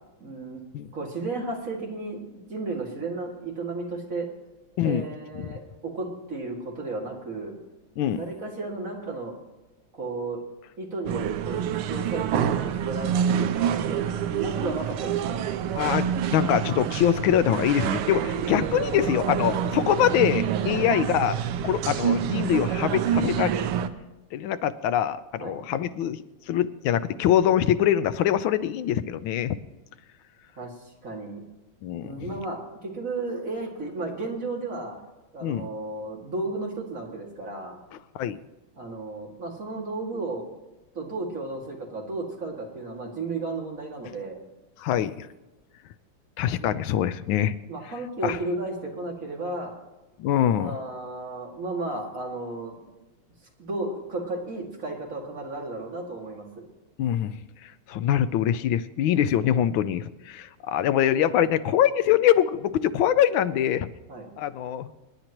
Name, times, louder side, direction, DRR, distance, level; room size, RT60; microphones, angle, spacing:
voice 1, 0.2-0.6 0.9-4.3 4.8-7.6 8.2-9.3 9.9-10.4 10.8-15.4 20.7-20.9 25.4-25.6 30.6-31.4 32.0-35.0 35.3-37.8 38.8-40.5 40.9-44.4 46.6-46.7 47.7-49.7 50.6-52.8 53.6-56.6 64.1-64.3, right 2 dB, 40° right, -2 dB, 2.6 m, -34 dB
sound 1, 11.1-23.9, right 9 dB, 85° right, 1.6 m, -27 dB
voice 2, 15.7-21.4 21.6-23.5 24.3-29.6 31.8-32.3 35.4-35.7 38.1-38.4 44.8-45.3 46.4-47.6 48.2-48.4 50.2-50.8 57.0-57.3 57.6-63.9 64.4-64.9, left 10 dB, 75° left, 13 dB, 1.3 m, -24 dB
26.5 x 10.0 x 3.0 m, 1.1 s
omnidirectional pair, 2.3 m